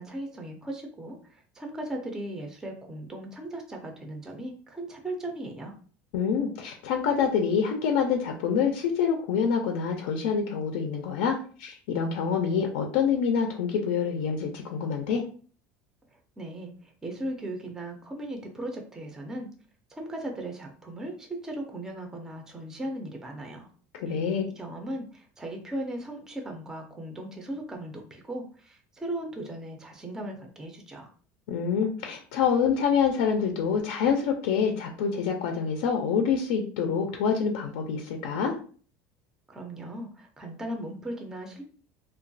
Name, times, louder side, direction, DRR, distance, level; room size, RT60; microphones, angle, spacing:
voice 1, 0.0-5.8 16.1-19.5 19.9-23.7 24.1-24.2 24.6-31.1 39.5-41.6, right 1 dB, 10° right, 3 dB, 0.4 m, -37 dB
voice 2, 6.1-15.2 24.0-24.5 31.5-38.6, left 6 dB, 85° left, 3 dB, 0.4 m, -26 dB
3.0 x 2.2 x 2.5 m, 0.43 s
cardioid pair, 160°, 5 cm